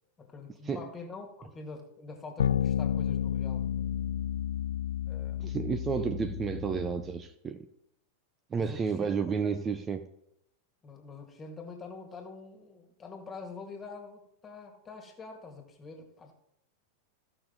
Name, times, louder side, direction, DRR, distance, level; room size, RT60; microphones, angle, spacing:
voice 1, 0.2-3.6 5.1-5.5 8.5-9.1 9.4-9.5 10.8-16.3, left 4 dB, 20° left, 2.0 m, -45 dB
sound 1, 2.4-7.2, left 9 dB, 65° left, 0.4 m, -31 dB
voice 2, 5.4-7.7 8.5-10.0, right 6 dB, 20° right, 0.6 m, -31 dB
14.5 x 6.0 x 3.9 m
figure-of-eight pair, 90°, 0 cm